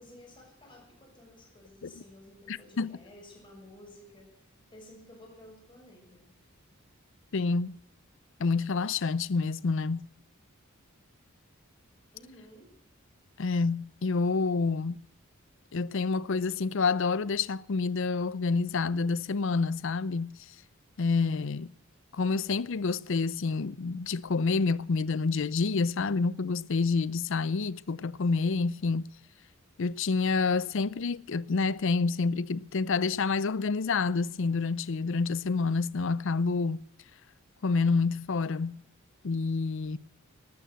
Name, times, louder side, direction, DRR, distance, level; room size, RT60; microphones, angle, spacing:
voice 1, 0.0-4.3 4.7-6.3 12.1-12.8, left 1 dB, 25° left, 6.1 m, -53 dB
voice 2, 2.5-3.0 7.3-7.8 8.4-10.1 13.4-15.0 15.7-20.4 21.0-21.7 22.1-29.1 29.8-36.8 37.6-38.8 39.2-40.0, left 4 dB, 60° left, 0.5 m, -28 dB
13.0 x 12.5 x 7.9 m
head